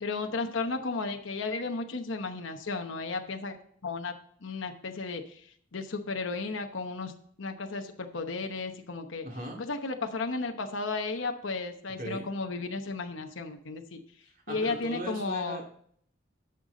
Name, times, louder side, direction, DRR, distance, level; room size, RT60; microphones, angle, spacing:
voice 1, 0.0-3.6 3.8-4.1 4.4-5.4 5.7-7.1 7.4-9.3 9.6-14.0 14.5-15.6, left 3 dB, 85° left, 5 dB, 0.9 m, -34 dB
voice 2, 9.2-9.6 12.0-12.3 14.2-15.6, right 1 dB, 45° right, 1 dB, 2.3 m, -39 dB
10.5 x 6.8 x 3.9 m, 0.63 s
head